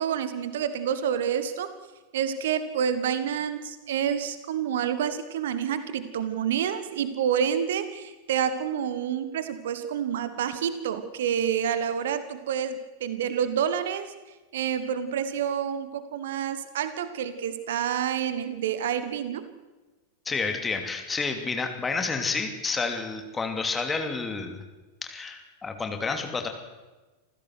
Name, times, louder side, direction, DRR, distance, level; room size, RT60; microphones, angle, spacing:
voice 1, 0.0-1.7 2.1-14.1 14.5-19.5, right 8 dB, 60° right, 13 dB, 1.4 m, -28 dB
voice 2, 20.2-24.6 25.0-26.5, left 4 dB, 15° left, 5 dB, 2.9 m, -30 dB
27.0 x 15.5 x 6.4 m, 1.2 s
figure-of-eight pair, 90°, 0 cm